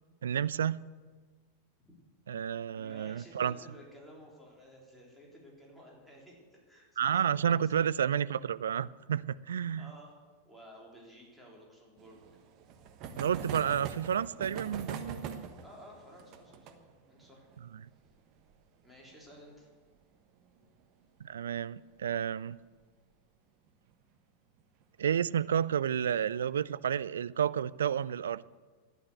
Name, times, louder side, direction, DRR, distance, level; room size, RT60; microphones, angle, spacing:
voice 1, 0.2-0.8 2.3-3.6 7.0-9.9 13.2-15.5 21.2-22.6 25.0-28.4, right 8 dB, 65° right, 17 dB, 0.4 m, -31 dB
voice 2, 2.7-7.7 9.8-10.1 10.4-12.2 15.6-16.8 17.1-17.5 18.8-19.7, equal, 5° right, -4 dB, 3.7 m, -54 dB
sound 1, 12.0-21.2 21.4-21.5 21.8-21.9 22.2-22.3 23.7-23.9 24.6-25.0, right 6 dB, 40° right, 1.2 m, -45 dB
12.0 x 9.5 x 8.1 m, 1.4 s
figure-of-eight pair, 90°, 0 cm